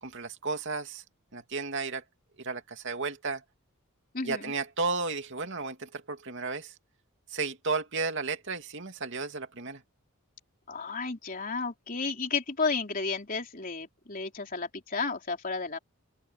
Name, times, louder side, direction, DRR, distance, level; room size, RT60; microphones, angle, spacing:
voice 1, 0.0-1.0 1.3-2.0 2.4-3.4 4.2-6.7 7.3-9.8, right 4 dB, 55° right, 2.7 m, -33 dB
voice 2, 4.1-4.5 10.7-15.8, left 4 dB, 40° left, 3.6 m, -32 dB
open air
head